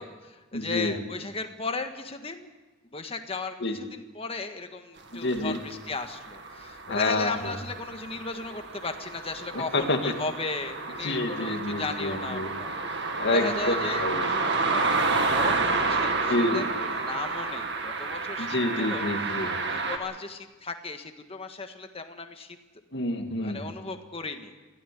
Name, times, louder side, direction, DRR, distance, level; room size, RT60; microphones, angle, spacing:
voice 1, 0.0-2.5 2.9-19.1 19.7-22.6 23.4-24.7, left 3 dB, 30° left, 6 dB, 1.7 m, -36 dB
voice 2, 0.5-0.9 3.6-3.8 5.1-5.6 6.9-7.6 9.5-10.1 11.0-12.5 13.2-14.3 16.3-16.7 18.4-19.6 22.9-23.7, left 2 dB, 60° left, 5 dB, 2.2 m, -28 dB
sound 1, 5.3-20.0, right 3 dB, 60° right, 2.1 m, -30 dB
22.0 x 16.0 x 8.5 m, 1.2 s
head